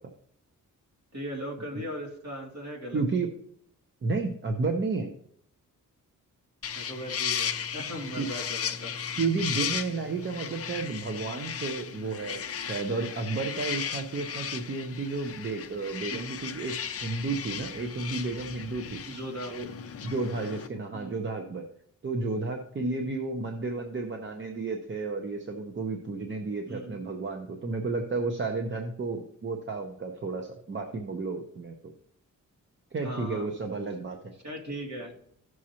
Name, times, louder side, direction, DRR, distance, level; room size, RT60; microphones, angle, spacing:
voice 1, 1.1-3.0 6.7-8.9 16.0-16.3 19.1-19.5 20.9-21.2 26.7-27.0 33.0-33.5 34.4-35.1, equal, 50° right, -1 dB, 2.6 m, -38 dB
voice 2, 2.9-3.3 4.0-5.1 8.2-8.3 9.2-16.7 17.0-19.0 19.5-19.7 20.0-21.6 22.0-31.9 32.9-34.2, right 3 dB, 35° right, 3 dB, 0.8 m, -32 dB
sound 1, 6.6-20.7, left 7 dB, 45° left, 0.6 m, -36 dB
15.5 x 6.3 x 2.9 m, 0.69 s
wide cardioid pair, 165°, 33 cm